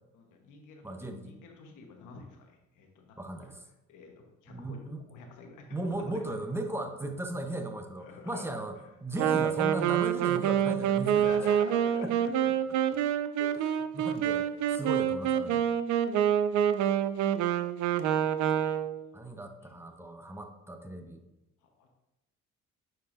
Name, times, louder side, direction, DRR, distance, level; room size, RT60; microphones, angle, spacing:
voice 1, 0.1-0.9 1.2-3.5 3.9-6.2 8.0-8.9 11.1-12.1 13.3-13.8 16.4-18.8 19.2-19.7 21.6-22.1, left 4 dB, 90° left, 2 dB, 1.2 m, -49 dB
voice 2, 0.8-1.3 3.2-3.6 4.5-5.0 5.7-8.8 9.0-11.2 12.0-12.1 12.4-13.0 13.9-15.7 19.1-21.2, right 1 dB, 10° right, 5 dB, 0.8 m, -37 dB
Wind instrument woodwind instrument, 9.2-19.1, right 9 dB, 70° right, 0.5 m, -27 dB
9.1 x 4.7 x 2.6 m, 0.99 s
cardioid pair, 90°, 30 cm